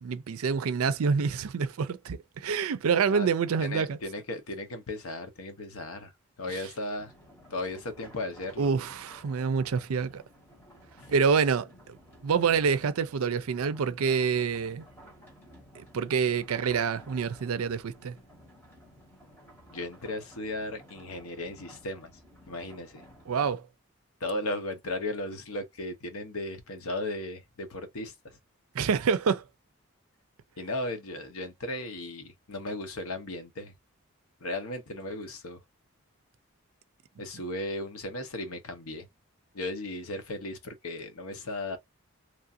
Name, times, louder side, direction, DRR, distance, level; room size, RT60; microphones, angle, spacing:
voice 1, 0.0-4.0 6.5-6.7 8.6-10.2 11.1-12.0 12.2-14.8 15.7-18.2 23.3-23.6 28.7-29.4, right 6 dB, 80° right, 0.4 m, -27 dB
voice 2, 3.6-6.1 6.4-7.1 7.5-8.7 11.0-11.1 19.7-22.1 22.5-23.0 24.2-28.1 30.6-33.7 34.4-35.6 37.2-39.1 39.5-41.8, left 1 dB, 80° left, 0.8 m, -36 dB
sound 1, 7.0-23.5, equal, 10° left, 1.3 m, -54 dB
3.1 x 2.4 x 2.6 m
head